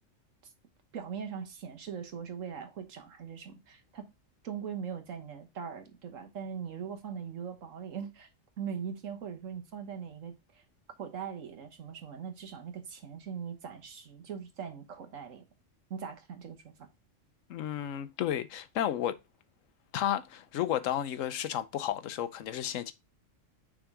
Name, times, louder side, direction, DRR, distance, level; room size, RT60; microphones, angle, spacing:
voice 1, 0.9-4.1 4.4-8.3 8.6-10.6 11.0-15.4 15.9-16.7, right 7 dB, 80° right, 1.5 m, -41 dB
voice 2, 17.5-19.1 19.9-22.9, left 11 dB, 80° left, 1.1 m, -32 dB
6.2 x 3.7 x 4.7 m
omnidirectional pair, 1.3 m